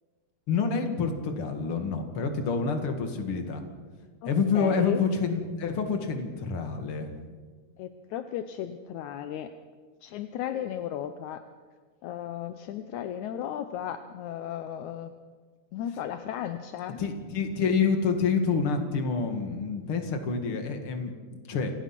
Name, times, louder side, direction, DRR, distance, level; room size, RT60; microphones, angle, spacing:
voice 1, 0.5-3.6 4.3-7.1 17.0-21.7, left 5 dB, 40° left, 6 dB, 2.5 m, -28 dB
voice 2, 4.5-5.0 7.8-9.5 10.0-11.4 12.0-15.1 15.7-17.0, left 10 dB, 75° left, 9 dB, 1.8 m, -35 dB
28.0 x 18.0 x 6.0 m, 1.5 s
omnidirectional pair, 4.2 m